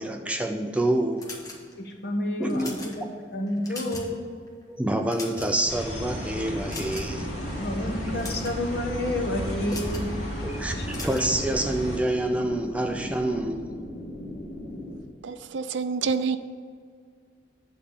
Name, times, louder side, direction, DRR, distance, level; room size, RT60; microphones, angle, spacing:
voice 1, 0.0-1.3 2.4-2.8 4.7-7.3 10.4-13.7, right 1 dB, 5° right, 0.4 m, -27 dB
sound 1, 1.2-1.9 2.4-2.9 3.5-4.2 4.5-4.6 5.0-5.7 6.7-7.2 8.0-8.6 9.7-10.1 10.9-11.3, left 2 dB, 20° left, 1.2 m, -39 dB
voice 2, 1.8-3.0 3.3-4.2 7.6-10.0 10.7-10.9, left 1 dB, 55° left, 1.1 m, -29 dB
sound 2, 5.7-12.0, equal, 35° left, 2.4 m, -34 dB
sound 3, 5.9-15.0, left 1 dB, 85° left, 1.6 m, -38 dB
voice 3, 15.2-16.4, right 5 dB, 75° right, 0.4 m, -27 dB
8.8 x 4.2 x 6.8 m
head